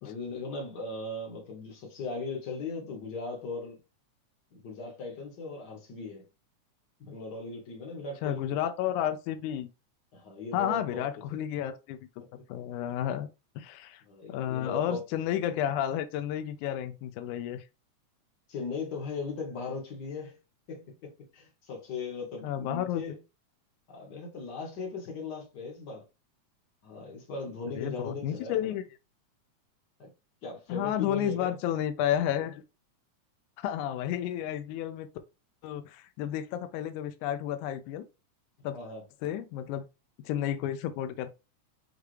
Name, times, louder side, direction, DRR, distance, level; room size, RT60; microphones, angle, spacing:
voice 1, 0.0-3.8 4.5-6.2 7.0-8.4 10.1-11.0 12.2-12.3 14.0-15.0 18.5-20.4 20.7-23.2 23.9-26.0 26.8-28.7 30.0-30.1 30.4-31.6 38.7-39.0, left 4 dB, 50° left, 1.3 m, -38 dB
voice 2, 8.2-9.7 10.5-12.0 12.5-13.3 13.6-14.0 14.3-17.6 22.4-23.0 27.8-28.8 30.7-32.6 33.6-35.1 35.6-38.1 38.6-38.8 39.2-39.9 40.2-41.4, left 10 dB, 90° left, 2.0 m, -31 dB
6.4 x 2.4 x 3.1 m
omnidirectional pair, 3.4 m